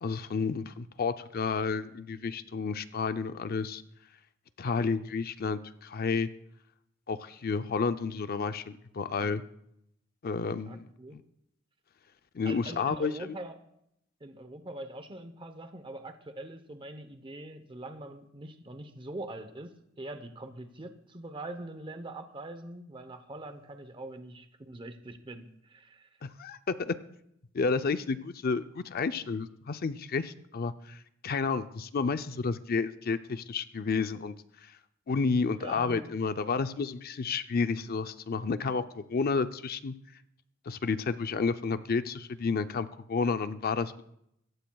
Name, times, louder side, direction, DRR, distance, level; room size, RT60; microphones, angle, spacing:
voice 1, 0.0-3.8 4.6-6.3 7.1-9.4 10.2-10.9 11.1-11.2 12.3-13.4 26.2-26.9 27.5-34.3 34.6-34.7 35.1-39.9 40.7-44.2, left 4 dB, 50° left, 11 dB, 0.5 m, -31 dB
voice 2, 10.6-11.2 12.4-13.6 14.2-26.1 35.6-36.0, right 2 dB, 25° right, 9 dB, 0.8 m, -43 dB
26.0 x 14.5 x 2.3 m, 0.78 s
head